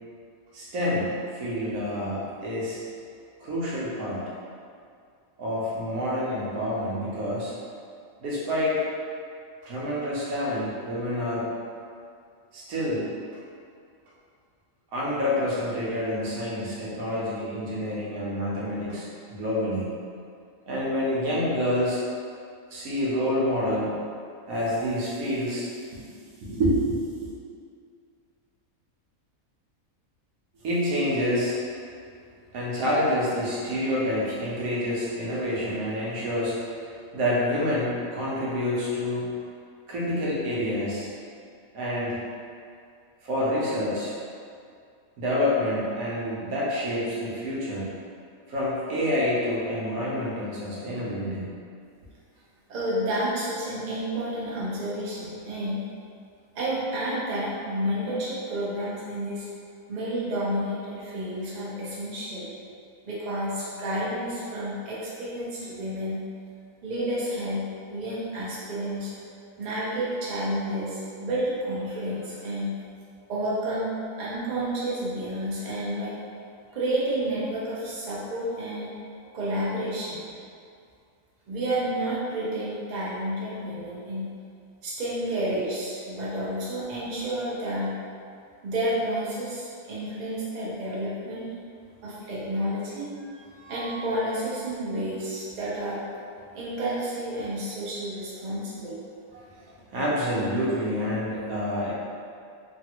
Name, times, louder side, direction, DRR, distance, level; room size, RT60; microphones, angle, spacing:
voice 1, 0.5-2.8 3.4-4.2 5.4-7.5 8.2-8.8 9.6-11.5 12.5-13.1 14.9-19.9 20.7-22.0 22.7-23.9 24.5-27.3 30.6-31.6 32.5-39.3 39.9-41.1 41.7-42.2 43.2-44.1 45.2-47.9 48.5-51.5 93.5-94.0 99.9-101.9, left 1 dB, 85° right, -7 dB, 1.2 m, -28 dB
voice 2, 52.7-55.8 56.5-59.5 59.9-62.5 63.0-66.2 66.8-67.6 67.9-72.7 73.3-76.2 76.7-78.9 79.3-80.2 81.5-84.3 84.8-87.9 88.6-91.4 92.0-93.1 93.7-96.0 96.5-99.0 99.3-99.4, right 1 dB, 40° right, -8 dB, 0.7 m, -30 dB
3.3 x 2.3 x 2.9 m, 2.3 s
omnidirectional pair, 1.5 m